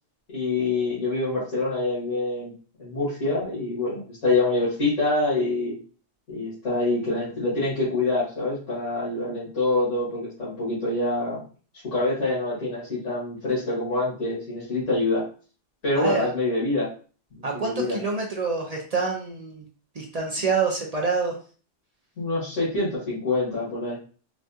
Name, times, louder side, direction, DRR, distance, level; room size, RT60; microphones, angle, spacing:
voice 1, 0.3-2.5 2.8-5.7 6.3-11.4 11.9-15.3 15.8-16.9 17.3-18.0 22.2-24.0, left 2 dB, 85° left, -9 dB, 1.9 m, -26 dB
voice 2, 15.9-16.3 17.4-19.6 20.0-21.3, right 4 dB, 45° right, 0 dB, 0.5 m, -26 dB
4.0 x 2.2 x 2.7 m, 0.38 s
omnidirectional pair, 1.2 m